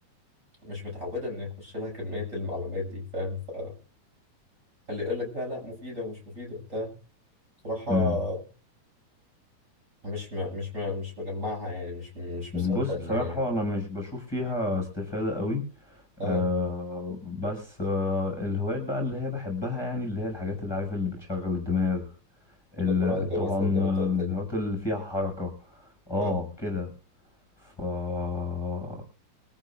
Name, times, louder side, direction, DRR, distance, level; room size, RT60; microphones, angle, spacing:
voice 1, 0.6-3.8 4.9-6.9 7.6-8.4 10.0-13.4 16.2-16.5 23.0-24.3 26.2-26.3, left 2 dB, 20° right, -1 dB, 7.6 m, -33 dB
voice 2, 12.5-22.1 22.7-26.9 27.6-29.0, left 3 dB, 5° left, 2 dB, 6.5 m, -29 dB
25.0 x 14.0 x 2.6 m, 0.37 s
omnidirectional pair, 3.6 m